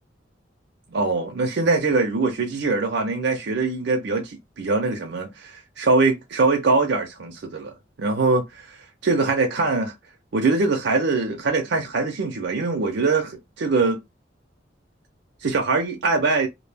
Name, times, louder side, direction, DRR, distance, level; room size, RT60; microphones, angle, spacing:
voice 1, 0.9-7.7 8.0-9.9 10.3-14.0 15.4-16.5, right 3 dB, 65° right, 0.5 m, -22 dB
2.1 x 2.1 x 3.3 m
head